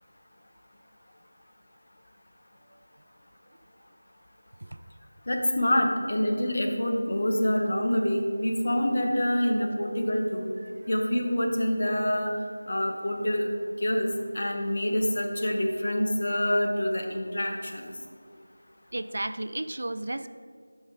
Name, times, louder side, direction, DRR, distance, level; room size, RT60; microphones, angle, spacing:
voice 1, 5.3-10.5 10.9-12.3 12.7-13.5 13.8-14.1 14.3-17.8, left 1 dB, 50° left, 2 dB, 1.2 m, -26 dB
voice 2, 18.9-20.3, right 1 dB, 55° right, 11 dB, 0.4 m, -33 dB
9.1 x 5.3 x 4.8 m, 2.1 s
figure-of-eight pair, 170°, 0 cm